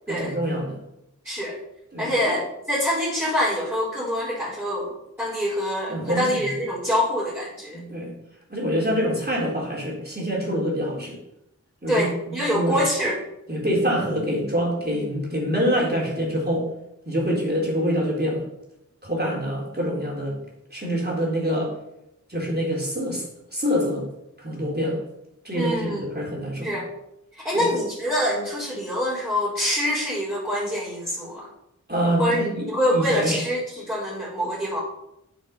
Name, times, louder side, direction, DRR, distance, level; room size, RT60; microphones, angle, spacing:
voice 1, 0.1-0.8 1.9-2.3 5.9-6.5 7.7-8.1 8.5-11.2 11.8-12.8 13.5-16.7 17.0-18.4 19.0-20.4 20.7-21.7 22.3-23.3 23.5-24.0 24.4-25.0 25.4-26.7 27.5-27.7 31.9-32.7 32.9-33.4, equal, 30° right, -3 dB, 3.9 m, -25 dB
voice 2, 1.2-1.6 2.0-4.9 5.2-7.8 11.9-13.2 25.5-26.1 26.6-26.9 27.3-31.5 32.2-34.8, equal, 5° right, -10 dB, 4.6 m, -25 dB
9.0 x 7.1 x 5.9 m, 0.84 s
wide cardioid pair, 55°, 31 cm